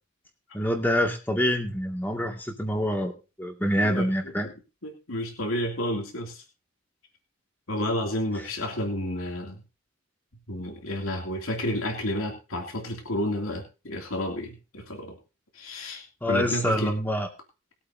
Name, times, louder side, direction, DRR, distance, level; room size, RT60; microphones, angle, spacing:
voice 1, 0.5-4.5 16.2-17.3, equal, 10° left, 2 dB, 2.2 m, -26 dB
voice 2, 4.8-6.4 7.7-9.6 10.5-15.2 15.5-16.9, left 1 dB, 80° left, 1 dB, 2.8 m, -31 dB
21.0 x 8.3 x 2.8 m, 0.31 s
head